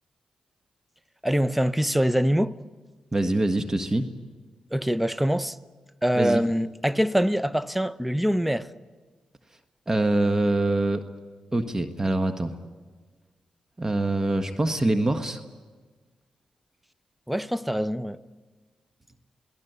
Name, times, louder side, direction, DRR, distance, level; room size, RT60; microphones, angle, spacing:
voice 1, 1.2-2.6 4.7-5.6 6.0-8.7 17.3-18.2, equal, 5° right, 0.9 m, -24 dB
voice 2, 3.1-4.1 6.1-6.4 9.9-11.0 11.5-12.5 13.8-15.4, right 2 dB, 25° right, 1.5 m, -24 dB
28.5 x 18.5 x 8.2 m
cardioid pair, 60°, 2 cm